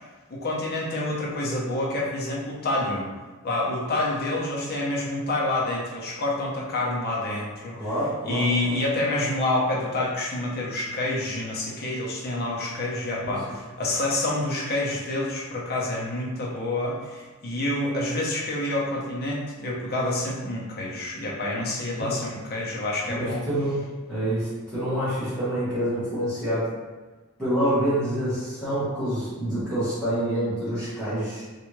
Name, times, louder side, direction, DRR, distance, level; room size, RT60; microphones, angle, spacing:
voice 1, 0.3-3.1 3.4-7.8 8.2-23.4, left 2 dB, 45° left, -4 dB, 0.8 m, -28 dB
voice 2, 7.7-8.8 13.2-13.3 22.0-22.1 23.1-23.8 24.1-26.7 27.4-31.4, right 1 dB, 5° left, -15 dB, 1.3 m, -27 dB
3.4 x 2.5 x 3.0 m, 1.3 s
head